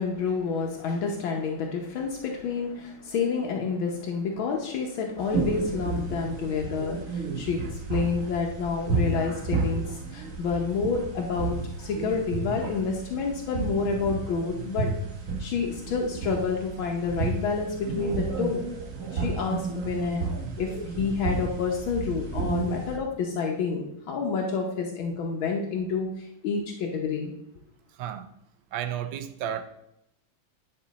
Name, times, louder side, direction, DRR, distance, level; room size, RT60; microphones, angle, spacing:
voice 1, 0.0-14.9 15.4-18.6 19.1-20.3 20.6-27.3, left 5 dB, 75° left, 1 dB, 1.7 m, -29 dB
sound 1, 5.2-23.0, right 4 dB, 45° right, 1.2 m, -32 dB
voice 2, 28.7-29.6, right 10 dB, 70° right, 10 dB, 1.4 m, -32 dB
9.8 x 6.1 x 4.1 m, 0.80 s
omnidirectional pair, 2.3 m